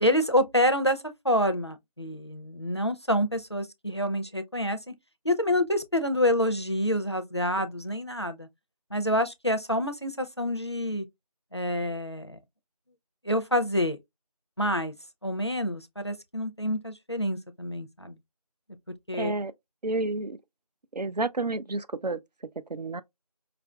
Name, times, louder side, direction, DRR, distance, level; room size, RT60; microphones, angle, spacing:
voice 1, 0.0-4.9 5.2-8.5 8.9-11.0 11.5-12.4 13.2-14.0 14.6-14.9 15.2-18.2 19.1-19.3, equal, 45° left, 0.5 m, -27 dB
voice 2, 19.1-19.5 19.8-20.4 20.9-22.2 22.7-23.0, right 2 dB, 85° right, 0.5 m, -30 dB
4.7 x 2.5 x 2.3 m
figure-of-eight pair, 180°, 20 cm